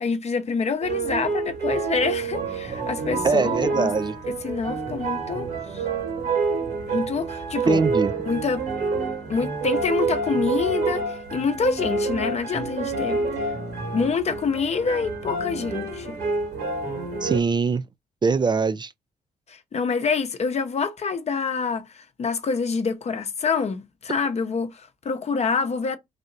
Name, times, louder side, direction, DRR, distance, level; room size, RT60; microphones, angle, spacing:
voice 1, 0.0-3.9 4.3-5.5 5.7-5.8 6.9-7.8 8.3-8.6 9.3-13.3 13.9-16.2 19.5-26.0, left 5 dB, 45° left, 0.7 m, -26 dB
sound 1, 0.8-17.4, right 4 dB, 70° right, 1.9 m, -28 dB
voice 2, 3.2-4.1 7.6-8.1 17.2-17.8 18.2-18.9, right 5 dB, 30° right, 0.4 m, -22 dB
3.4 x 2.7 x 3.9 m
supercardioid pair, 60°, 16 cm